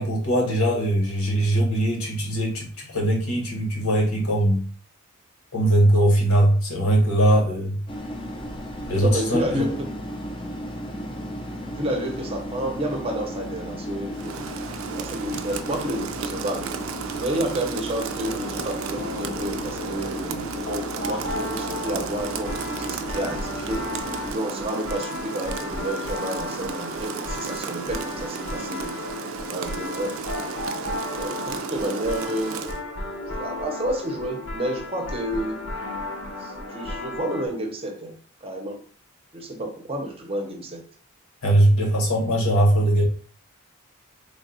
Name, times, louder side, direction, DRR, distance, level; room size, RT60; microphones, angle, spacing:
voice 1, 0.0-4.6 5.5-7.8 8.8-9.7 41.4-43.1, right 1 dB, 75° left, -1 dB, 1.2 m, -21 dB
sound 1, 7.9-24.3, equal, 25° left, 0.5 m, -35 dB
voice 2, 9.0-9.9 11.6-14.6 14.9-16.7 17.1-23.9 24.3-29.0 29.5-30.2 31.1-32.7 33.4-35.6 36.4-38.2 38.4-38.8 39.3-40.8, right 1 dB, 25° right, 2 dB, 0.7 m, -30 dB
Rain, 14.1-32.8, right 6 dB, 65° right, 0.4 m, -34 dB
sound 2, 18.2-37.5, left 2 dB, 60° left, 0.9 m, -34 dB
3.4 x 2.3 x 4.0 m, 0.44 s
head